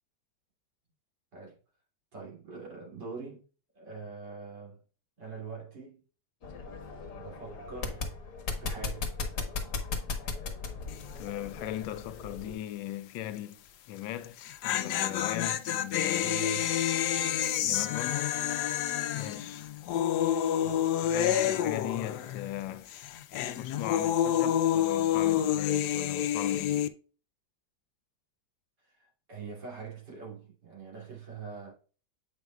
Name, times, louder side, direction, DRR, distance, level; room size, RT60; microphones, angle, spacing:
voice 1, 2.1-3.4 3.7-4.8 5.2-6.0 7.2-8.1 8.6-9.1 16.2-16.9 20.6-20.9 28.8-31.7, right 5 dB, 65° right, 3.4 m, -43 dB
sound 1, 6.4-12.6, left 4 dB, 50° left, 1.4 m, -37 dB
sound 2, 10.9-11.2 11.5-11.6 14.2-22.6 22.9-26.9, left 10 dB, 70° left, 1.1 m, -29 dB
voice 2, 11.1-13.6 13.9-16.4 17.7-18.4 19.1-19.7 21.0-22.9 23.6-26.8, left 13 dB, 90° left, 1.4 m, -38 dB
7.9 x 5.2 x 2.3 m
omnidirectional pair, 2.1 m